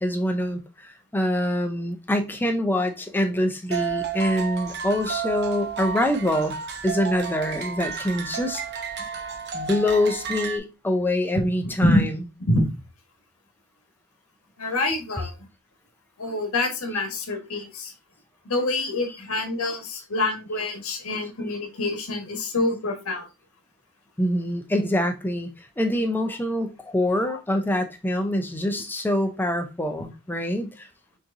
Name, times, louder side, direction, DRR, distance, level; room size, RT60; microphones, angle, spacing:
voice 1, 0.0-6.6 6.8-8.6 9.5-12.1 24.2-30.9, left 1 dB, 10° left, 0.5 m, -25 dB
sound 1, 3.7-10.6, right 7 dB, 50° right, 0.8 m, -32 dB
voice 2, 14.6-15.3 16.2-17.9 18.4-23.3 27.3-27.4, left 2 dB, 75° left, 1.2 m, -26 dB
6.3 x 3.0 x 2.6 m
head